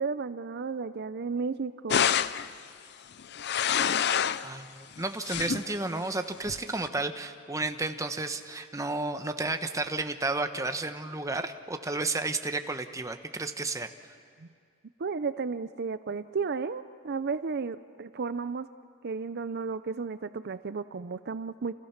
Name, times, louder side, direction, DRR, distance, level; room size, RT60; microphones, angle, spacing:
voice 1, 0.0-2.1 14.4-14.5 15.0-18.7 19.0-21.7, right 5 dB, 55° right, 12 dB, 0.5 m, -33 dB
sound 1, 1.9-2.5 3.2-4.5 5.0-5.7 6.5-6.9, left 8 dB, 55° left, 0.6 m, -27 dB
voice 2, 4.4-13.9, right 2 dB, 15° right, 7 dB, 1.0 m, -32 dB
30.0 x 28.0 x 5.9 m, 2.2 s
head